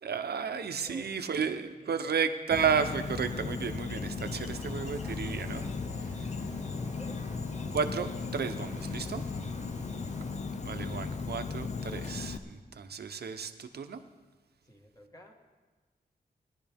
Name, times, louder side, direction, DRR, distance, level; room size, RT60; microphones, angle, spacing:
voice 1, 0.0-5.6 7.7-9.2 10.6-14.0, right 6 dB, 75° right, 8 dB, 0.8 m, -32 dB
voice 2, 0.9-2.1 6.4-7.3 14.6-15.3, equal, 20° left, 0 dB, 1.6 m, -53 dB
Insect, 2.5-12.4, left 4 dB, 45° left, 0.7 m, -36 dB
Bus, 4.2-10.4, right 2 dB, 20° right, 0.8 m, -48 dB
20.0 x 11.5 x 3.5 m, 1.3 s
wide cardioid pair, 170°, 17 cm